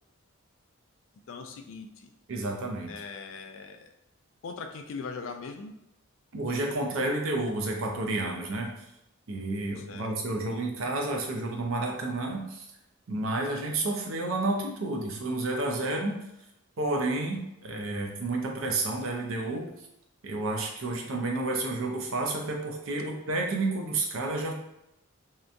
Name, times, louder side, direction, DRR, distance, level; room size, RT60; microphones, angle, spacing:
voice 1, 1.3-2.1 2.9-3.9 4.4-5.7 9.8-10.1, left 4 dB, 60° left, 5 dB, 0.3 m, -40 dB
voice 2, 2.3-2.9 6.3-8.7 9.3-12.7 13.1-16.2 16.8-19.7 20.2-24.5, right 2 dB, 65° right, 1 dB, 0.5 m, -30 dB
2.8 x 2.2 x 2.5 m, 0.86 s
head